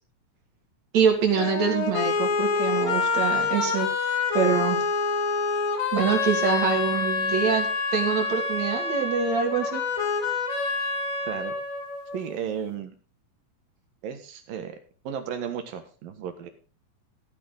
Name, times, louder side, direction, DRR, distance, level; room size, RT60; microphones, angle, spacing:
voice 1, 0.9-3.9 4.3-4.8 5.9-9.8, right 6 dB, 50° right, 2 dB, 3.7 m, -25 dB
sound 1, 1.4-12.3, left 4 dB, 65° left, 3.8 m, -27 dB
voice 2, 12.1-13.0 14.0-14.8 15.0-16.5, right 8 dB, 70° right, 7 dB, 3.1 m, -34 dB
15.0 x 9.4 x 4.0 m, 0.36 s
omnidirectional pair, 4.3 m